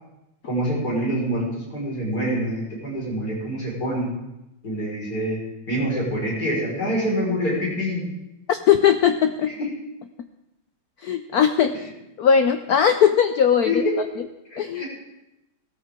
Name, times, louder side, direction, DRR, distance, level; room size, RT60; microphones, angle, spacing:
voice 1, 0.4-4.1 4.6-5.4 5.7-8.0 13.7-13.8 14.5-14.9, equal, 45° left, -4 dB, 5.3 m, -26 dB
voice 2, 8.5-9.5 11.0-11.9 12.2-13.8 14.6-14.8, left 8 dB, 85° left, 8 dB, 0.8 m, -19 dB
16.5 x 13.5 x 3.7 m, 0.93 s
omnidirectional pair, 2.3 m